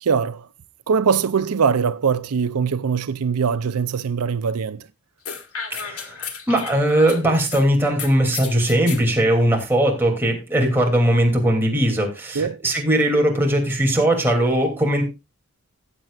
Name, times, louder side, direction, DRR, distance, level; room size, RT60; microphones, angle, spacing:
voice 1, 0.0-0.5 0.9-4.9 12.3-12.6, right 6 dB, 85° right, 0.5 m, -22 dB
sound 1, 5.2-7.6 8.0-9.0, left 6 dB, 75° left, 1.8 m, -33 dB
voice 2, 5.7-6.2 6.5-15.0, right 1 dB, 10° right, 2.8 m, -19 dB
17.5 x 7.8 x 2.4 m
head